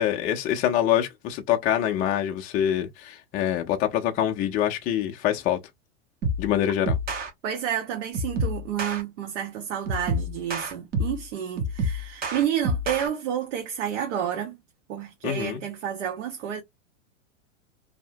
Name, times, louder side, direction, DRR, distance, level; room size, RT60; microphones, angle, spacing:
voice 1, 0.0-5.6 6.4-6.9 15.2-15.6, left 11 dB, 25° left, 0.4 m, -25 dB
sound 1, 6.2-6.5 6.9-7.3 8.1-9.0 9.9-11.2 11.6-13.1, equal, 25° right, 0.7 m, -28 dB
voice 2, 7.4-14.6 14.9-16.6, right 9 dB, 70° right, 0.8 m, -30 dB
2.7 x 2.1 x 2.6 m
hypercardioid pair, 115°, 37 cm